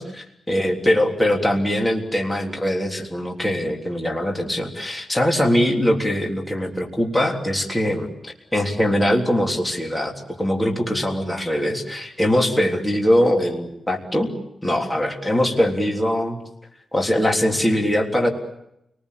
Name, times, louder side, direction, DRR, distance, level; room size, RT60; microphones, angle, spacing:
voice 1, 0.0-14.3 14.6-16.4 16.9-18.3, equal, 10° left, 1 dB, 3.5 m, -22 dB
29.0 x 20.0 x 8.4 m, 0.83 s
wide cardioid pair, 120°, 0 cm